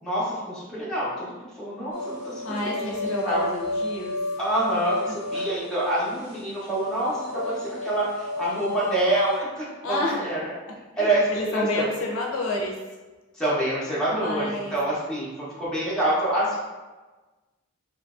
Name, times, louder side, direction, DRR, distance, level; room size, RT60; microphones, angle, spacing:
voice 1, 0.0-3.0 3.3-3.5 4.4-10.5 10.9-11.8 13.3-16.6, right 1 dB, 5° left, -9 dB, 0.7 m, -26 dB
sound 1, 1.9-9.4, left 2 dB, 55° right, 1.3 m, -32 dB
voice 2, 2.4-4.2 9.8-10.2 11.0-12.8 14.1-14.8, left 2 dB, 70° left, -1 dB, 0.5 m, -29 dB
2.8 x 2.5 x 2.3 m, 1.2 s
head